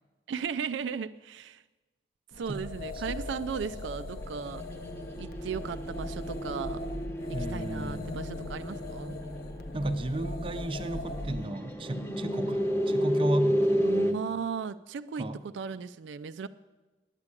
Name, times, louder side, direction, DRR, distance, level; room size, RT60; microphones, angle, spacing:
voice 1, 0.3-1.6 2.4-4.7 5.2-6.8 7.5-9.2 13.8-16.5, right 6 dB, 80° right, 12 dB, 0.4 m, -36 dB
sound 1, 2.3-11.4, left 2 dB, 55° left, 0.7 m, -40 dB
sound 2, 3.9-14.1, equal, 10° left, 0.9 m, -32 dB
voice 2, 7.3-8.2 9.7-14.0 15.2-15.4, right 1 dB, 30° right, 9 dB, 0.6 m, -34 dB
9.8 x 8.3 x 9.7 m, 1.2 s
head